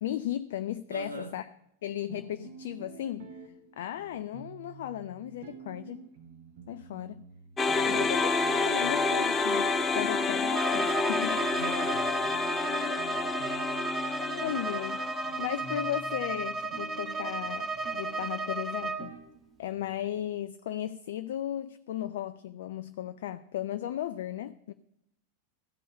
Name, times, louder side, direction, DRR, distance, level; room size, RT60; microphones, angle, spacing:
voice 1, 0.0-1.5 1.8-3.3 3.8-6.1 6.7-7.2 7.9-8.3 8.6-11.5 14.2-15.0 15.4-19.1 19.6-24.7, left 12 dB, 55° left, 0.4 m, -35 dB
voice 2, 0.9-1.3 7.8-8.1 11.5-12.1 14.5-14.6, right 1 dB, 90° left, 0.8 m, -40 dB
sound 1, 2.1-20.1, right 5 dB, 50° right, 1.9 m, -50 dB
sound 2, 7.6-15.9, left 4 dB, 15° left, 0.8 m, -29 dB
Bowed string instrument, 10.5-19.1, right 3 dB, 20° right, 1.0 m, -34 dB
14.5 x 5.4 x 8.5 m
figure-of-eight pair, 90°, 0 cm